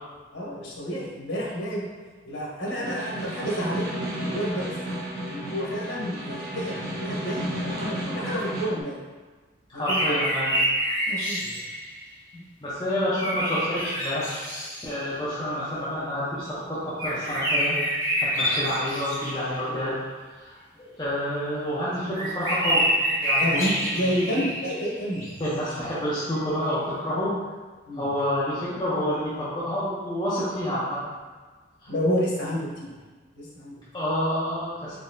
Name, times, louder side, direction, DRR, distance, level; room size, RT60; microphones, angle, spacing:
voice 1, 0.3-1.9 2.2-4.7 5.3-9.0 9.7-10.0 11.1-11.6 12.3-12.4 23.4-25.3 27.8-28.1 31.9-32.9 33.3-33.7, equal, 85° left, -5 dB, 1.0 m, -30 dB
Snare drum, 2.7-8.8, equal, 55° right, 0.8 m, -33 dB
voice 2, 9.7-10.6 12.6-14.3 14.8-17.8 18.2-20.0 20.3-22.9 23.2-24.1 25.4-27.3 27.9-31.0 31.8-31.9 33.9-34.9, equal, 25° left, -11 dB, 0.6 m, -28 dB
sound 1, 9.9-11.9 13.2-14.9 17.0-19.6 22.1-24.9 25.1-25.7, equal, 20° right, 1.2 m, -27 dB
3.9 x 2.9 x 2.6 m, 1.4 s
head